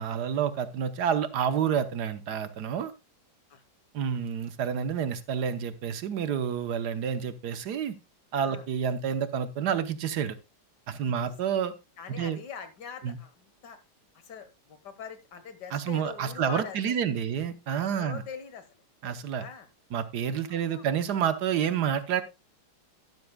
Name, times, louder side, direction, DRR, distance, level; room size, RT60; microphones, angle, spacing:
voice 1, 0.0-2.9 3.9-8.0 8.3-10.3 10.9-11.7 12.1-12.4 13.0-13.2 15.7-18.2 19.0-19.4 19.9-22.2, right 8 dB, 70° right, 11 dB, 1.4 m, -29 dB
voice 2, 11.0-11.3 12.0-13.8 14.1-17.0 17.8-18.8 19.4-19.7 20.5-20.9, left 7 dB, 70° left, 10 dB, 1.9 m, -43 dB
12.0 x 12.0 x 2.2 m, 0.25 s
omnidirectional pair, 1.9 m